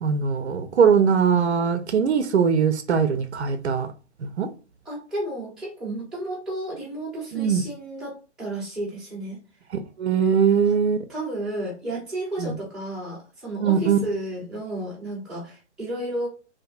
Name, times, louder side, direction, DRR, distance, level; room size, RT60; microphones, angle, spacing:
voice 1, 0.0-3.9 4.2-4.5 7.3-7.6 10.0-11.0 12.4-12.5 13.6-14.0, right 6 dB, 65° right, 0.5 m, -21 dB
voice 2, 4.8-9.4 10.7-10.8 11.1-16.3, right 1 dB, ahead, 0.5 m, -32 dB
2.5 x 2.5 x 2.3 m
figure-of-eight pair, 130°, 36 cm